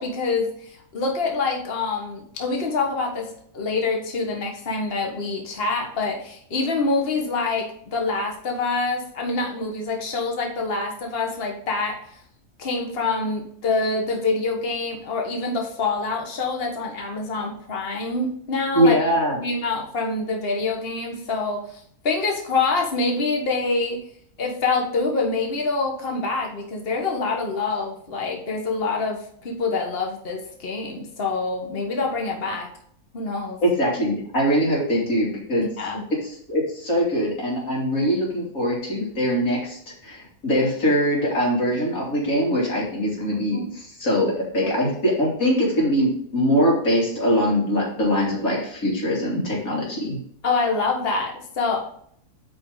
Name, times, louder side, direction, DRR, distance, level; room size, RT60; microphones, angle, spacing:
voice 1, 0.0-12.2 12.6-19.0 19.4-24.0 24.4-32.7 33.1-33.6 35.8-36.1 43.5-43.7 44.6-44.7 50.4-51.8, left 3 dB, 40° left, 1 dB, 1.6 m, -26 dB
voice 2, 18.7-19.4 33.6-35.7 36.5-50.2, equal, 65° left, -3 dB, 3.4 m, -22 dB
8.3 x 5.2 x 3.9 m, 0.62 s
omnidirectional pair, 1.6 m